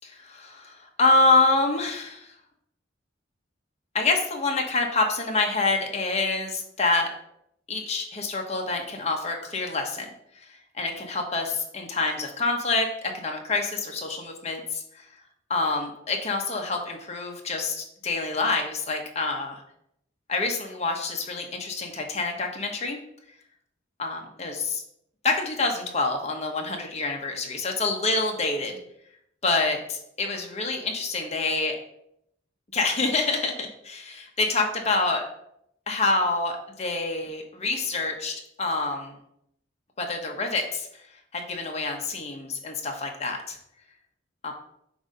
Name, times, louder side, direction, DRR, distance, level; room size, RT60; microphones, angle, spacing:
voice 1, 0.0-2.3 3.9-7.1 7.7-10.1 10.3-10.4 10.7-12.9 13.1-15.1 15.5-19.6 20.3-23.0 24.0-24.8 25.2-28.8 29.4-31.7 32.7-35.2 35.9-39.1 40.0-41.0 41.3-43.6 44.4-44.5, left 3 dB, 35° left, 2 dB, 1.0 m, -27 dB
7.8 x 2.7 x 5.2 m, 0.74 s
head